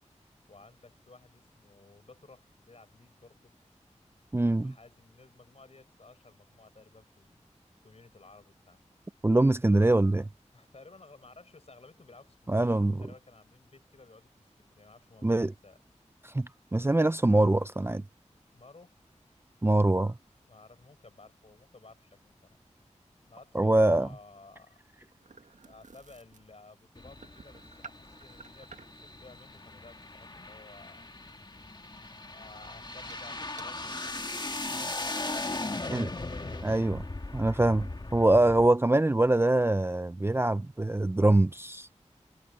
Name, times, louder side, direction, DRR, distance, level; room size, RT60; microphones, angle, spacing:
voice 1, 0.5-3.5 4.6-7.5 7.8-8.8 10.5-15.8 18.5-19.0 20.4-22.6 23.3-24.8 25.6-31.1 32.3-34.2 35.4-36.7 37.7-38.2, left 3 dB, 55° left, 7.7 m, -55 dB
voice 2, 4.3-4.7 9.2-10.3 12.5-12.9 15.2-15.5 16.2-18.0 19.6-20.1 23.5-24.1 35.9-36.1 36.6-37.0 37.3-41.9, right 2 dB, 20° right, 0.5 m, -24 dB
sound 1, 24.5-29.1 31.3-31.5 32.0-32.2 32.6-32.7 33.0-33.2 33.6-33.7 34.2-34.3 34.5-34.8, right 4 dB, 80° right, 1.5 m, -53 dB
sound 2, 26.9-38.7, left 2 dB, 35° left, 1.8 m, -38 dB
wide cardioid pair, 75°, 13 cm